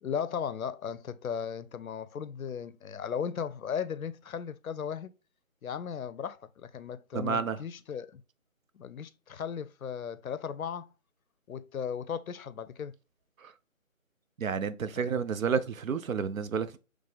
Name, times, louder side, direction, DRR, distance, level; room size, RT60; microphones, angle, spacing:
voice 1, 0.0-5.1 5.6-8.2 8.7-10.9 11.5-13.0 15.0-15.1, left 7 dB, 90° left, 0.5 m, -36 dB
voice 2, 7.1-7.6 13.4-13.5 14.4-16.8, right 6 dB, 75° right, 0.6 m, -30 dB
3.2 x 2.5 x 3.4 m
figure-of-eight pair, 170°, 41 cm